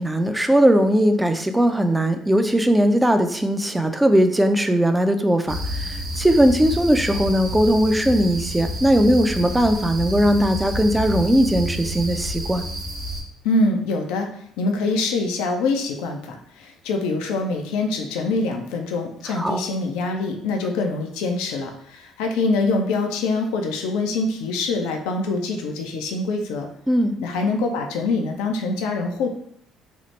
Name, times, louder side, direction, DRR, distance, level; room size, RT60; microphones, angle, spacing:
voice 1, 0.0-12.6 19.4-19.6 26.9-27.1, equal, 10° right, 8 dB, 0.4 m, -19 dB
sound 1, 5.5-13.2, equal, 50° right, 0.7 m, -29 dB
voice 2, 13.4-14.3 14.6-26.7 27.2-29.3, left 3 dB, 75° left, 3 dB, 0.4 m, -24 dB
2.9 x 2.0 x 3.1 m, 0.69 s
hypercardioid pair, 55°, 0 cm